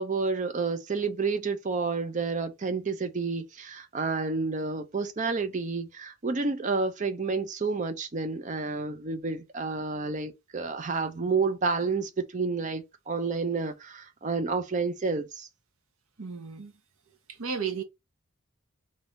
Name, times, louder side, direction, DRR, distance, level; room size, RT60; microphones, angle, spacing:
voice 1, 0.0-15.5, right 4 dB, 35° right, 0.5 m, -30 dB
voice 2, 16.2-16.7 17.3-17.8, right 6 dB, 80° right, 0.8 m, -33 dB
3.5 x 2.7 x 3.8 m
head